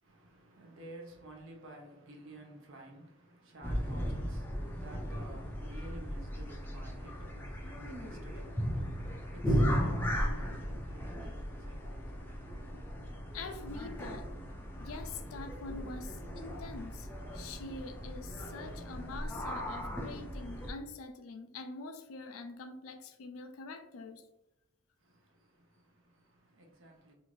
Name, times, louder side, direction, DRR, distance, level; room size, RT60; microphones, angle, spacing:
voice 1, 0.0-12.9 25.0-27.1, right 1 dB, 70° right, 0.7 m, -53 dB
sound 1, 3.6-20.7, equal, 10° left, 0.4 m, -36 dB
voice 2, 13.3-14.3 14.8-17.1 17.3-24.2, left 3 dB, 90° left, 0.4 m, -45 dB
2.8 x 2.4 x 3.0 m
head